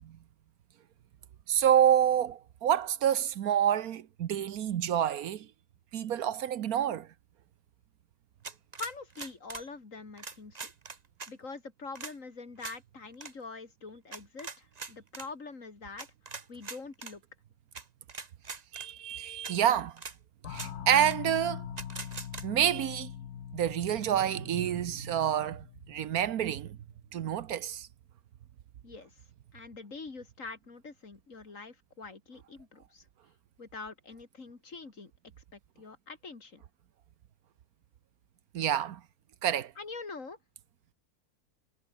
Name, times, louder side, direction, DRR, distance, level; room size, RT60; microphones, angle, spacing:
voice 1, 1.5-5.5 5.9-7.1 18.7-19.9 20.5-21.6 22.4-23.1 23.5-26.7 27.1-27.9 38.5-39.0 39.4-39.7, right 10 dB, 75° right, 1.3 m, -28 dB
sound 1, 8.4-9.7 10.2-11.3 12.0-12.1 12.6-12.8 13.1-13.3 14.1-15.3 16.0-17.1 17.8-17.9 18.1-18.9 19.4-19.5 20.0-20.2 20.5-20.7 21.1-21.2 21.8-22.5, right 4 dB, 30° right, 1.3 m, -42 dB
voice 2, 8.8-10.7 11.3-16.1 16.5-17.2 28.8-29.1 29.5-33.1 33.6-35.1 35.5-36.6 39.8-40.4, left 4 dB, 60° left, 3.2 m, -44 dB
sound 2, 20.4-26.8, left 9 dB, 90° left, 1.6 m, -43 dB
omnidirectional pair, 1.6 m